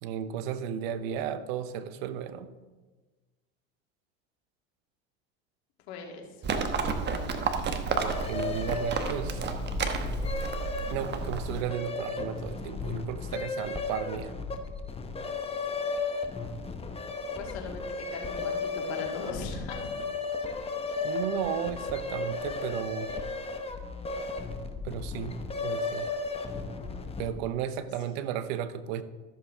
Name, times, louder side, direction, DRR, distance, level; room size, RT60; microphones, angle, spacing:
voice 1, 0.0-2.5 8.0-9.4 10.9-14.3 21.0-23.1 24.8-25.4 25.6-26.1 27.2-29.0, right 9 dB, 70° right, 12 dB, 0.9 m, -34 dB
voice 2, 5.9-6.3 6.7-7.3 17.3-19.9, left 4 dB, 80° left, 1 dB, 2.1 m, -39 dB
Livestock farm animals working animals, 6.4-11.6, right 4 dB, 35° right, 1.2 m, -31 dB
sound 1, 8.0-27.5, left 3 dB, 20° left, 1.1 m, -35 dB
14.0 x 7.3 x 3.6 m, 1.3 s
supercardioid pair, 95°, 32 cm